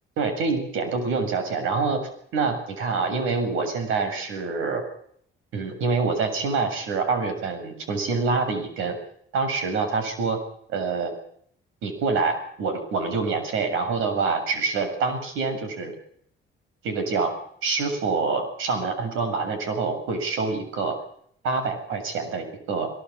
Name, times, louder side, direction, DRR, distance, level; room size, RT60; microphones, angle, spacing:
voice 1, 0.2-4.8 5.5-9.0 9.3-10.4 10.7-11.1 11.8-15.9 16.8-17.4 17.6-21.0 21.4-22.9, right 4 dB, 85° right, 8 dB, 7.4 m, -26 dB
22.0 x 20.5 x 8.7 m, 0.66 s
cardioid pair, 90°, 20 cm